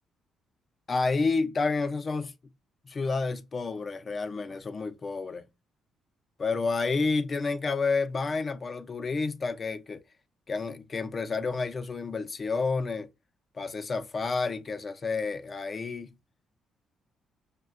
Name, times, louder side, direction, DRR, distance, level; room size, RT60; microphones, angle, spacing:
voice 1, 0.9-2.3 2.9-5.5 6.4-10.0 10.5-13.1 13.5-16.1, left 4 dB, 40° left, 0.5 m, -30 dB
5.4 x 2.2 x 2.4 m
cardioid pair, 90°, 0 cm